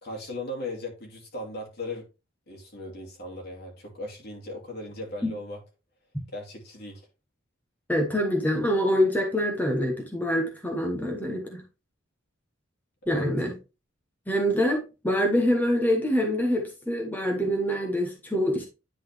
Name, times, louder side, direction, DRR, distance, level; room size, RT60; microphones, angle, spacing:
voice 1, 0.0-2.0 2.5-5.6 6.3-7.0 13.1-13.3, left 1 dB, 55° left, 2.5 m, -37 dB
voice 2, 7.9-11.6 13.1-13.6 14.3-18.6, equal, 10° left, 1.2 m, -25 dB
10.0 x 4.2 x 3.4 m
head